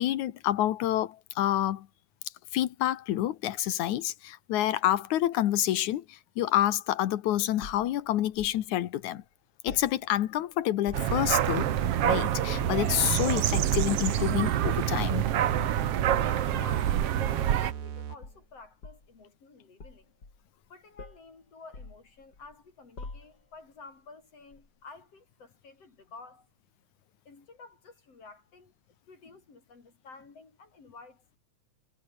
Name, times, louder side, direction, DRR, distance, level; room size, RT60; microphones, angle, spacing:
voice 1, 0.0-1.9 2.5-9.2 9.6-11.7 12.0-15.2, left 13 dB, 85° left, 2.6 m, -28 dB
sound 1, 7.6-8.6 9.7-10.4 10.7-11.3 11.7-12.1 12.5-12.9 14.0-14.3 14.9-15.1 15.6-15.8 16.5-17.9 18.2-19.2 19.8-20.7 21.0-21.3 21.7-22.5 23.0-23.6 24.5-24.7, left 3 dB, 35° left, 5.1 m, -46 dB
sound 2, 10.9-17.7, right 11 dB, 60° right, 2.0 m, -26 dB
sound 3, 12.5-18.4, right 8 dB, 85° right, 3.7 m, -39 dB
voice 2, 16.5-20.1 20.7-26.5 27.3-28.7 29.1-31.4, left 4 dB, 55° left, 5.5 m, -51 dB
omnidirectional pair, 3.3 m